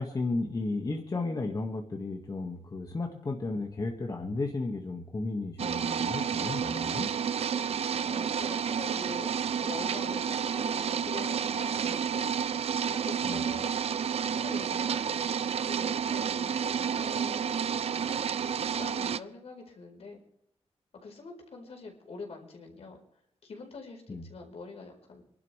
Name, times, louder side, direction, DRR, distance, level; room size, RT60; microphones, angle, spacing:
voice 1, 0.0-7.1 13.2-13.5 24.1-24.2, left 3 dB, 35° left, 1 dB, 1.9 m, -34 dB
sound 1, 5.6-19.2, right 7 dB, 70° right, 0.6 m, -30 dB
voice 2, 8.0-9.3 9.6-12.5 12.9-13.7 14.3-17.4 18.4-18.5 18.8-20.2 21.0-23.0 23.4-25.2, left 3 dB, 70° left, 2 dB, 4.7 m, -45 dB
26.5 x 12.0 x 3.4 m, 0.76 s
wide cardioid pair, 140°, 11 cm